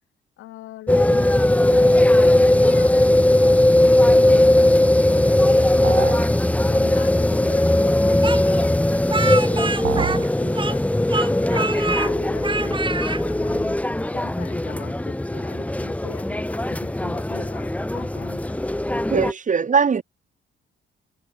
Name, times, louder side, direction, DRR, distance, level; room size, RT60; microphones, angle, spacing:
voice 1, 0.4-1.3 1.6-3.0 3.4-8.8 9.0-10.9 11.2-13.9 14.1-18.6, left 16 dB, 90° left, 5.5 m, -41 dB
sound 1, 0.9-19.3, left 1 dB, 5° left, 1.6 m, -19 dB
sound 2, 5.8-6.3 9.8-10.3, right 16 dB, 90° right, 1.4 m, -27 dB
Speech, 8.2-10.8 11.1-12.1 12.4-13.2, right 3 dB, 25° right, 4.3 m, -26 dB
voice 2, 19.1-20.0, right 6 dB, 40° right, 3.1 m, -20 dB
cardioid pair, 90°, 20 cm